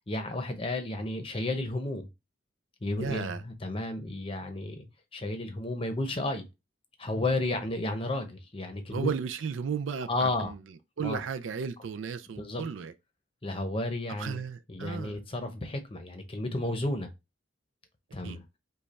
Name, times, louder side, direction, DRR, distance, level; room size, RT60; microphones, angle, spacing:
voice 1, 0.1-2.1 2.8-4.9 5.1-6.5 7.0-9.1 10.1-10.5 11.0-11.2 12.4-12.6 13.4-14.4 14.7-17.1 18.1-18.4, left 2 dB, 25° left, 0.7 m, -32 dB
voice 2, 3.0-3.4 8.9-10.6 11.0-12.9 14.2-15.2 18.2-18.4, right 6 dB, 70° right, 0.4 m, -34 dB
5.2 x 2.3 x 4.1 m
head